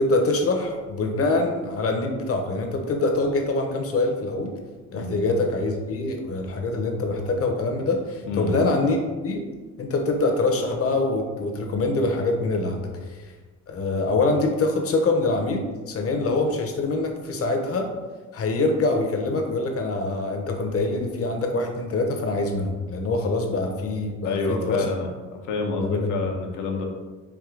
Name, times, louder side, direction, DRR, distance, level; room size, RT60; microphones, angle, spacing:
voice 1, 0.0-4.5 4.9-9.0 9.2-9.4 9.8-13.3 13.7-17.9 18.3-24.8 25.8-26.1, left 2 dB, 50° left, 2 dB, 0.9 m, -24 dB
voice 2, 8.3-8.6 24.2-25.1 25.4-26.9, left 3 dB, 85° left, 2 dB, 0.8 m, -28 dB
4.8 x 2.7 x 3.8 m, 1.3 s
cardioid pair, 90°, 30 cm